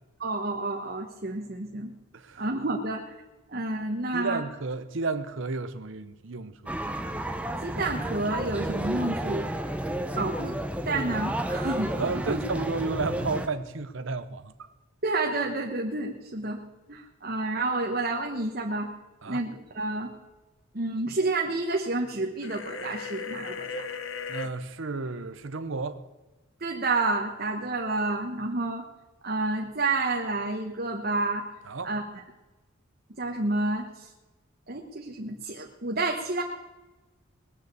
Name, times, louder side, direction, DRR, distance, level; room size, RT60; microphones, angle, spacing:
voice 1, 0.2-1.9 2.4-3.1 3.5-4.4 7.6-9.5 10.2-10.6 10.8-11.9 12.3-12.4 15.0-16.6 16.9-18.9 19.3-20.1 20.7-23.8 26.6-28.8 29.2-31.4 31.8-32.0 33.2-34.1 34.7-36.4, right 2 dB, 45° right, 1.3 m, -29 dB
voice 2, 2.1-2.4 4.1-6.7 12.0-14.7 19.2-19.5 24.3-26.0 31.7-31.9, right 3 dB, 65° right, 0.8 m, -32 dB
sound 1, 6.7-13.5, right 1 dB, 5° right, 0.8 m, -31 dB
sound 2, 22.4-24.5, left 4 dB, 65° left, 1.1 m, -36 dB
20.5 x 6.8 x 8.3 m
head